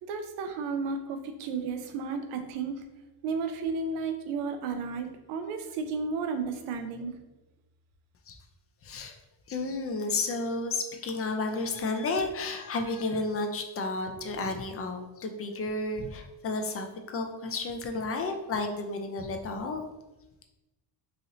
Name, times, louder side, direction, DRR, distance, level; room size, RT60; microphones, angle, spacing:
voice 1, 0.0-2.8 3.2-7.1, right 4 dB, 80° right, 7 dB, 0.6 m, -33 dB
voice 2, 8.8-9.1 9.5-19.8, left 3 dB, 30° left, 5 dB, 0.5 m, -32 dB
3.1 x 2.7 x 2.6 m, 1.0 s
supercardioid pair, 75°, 49 cm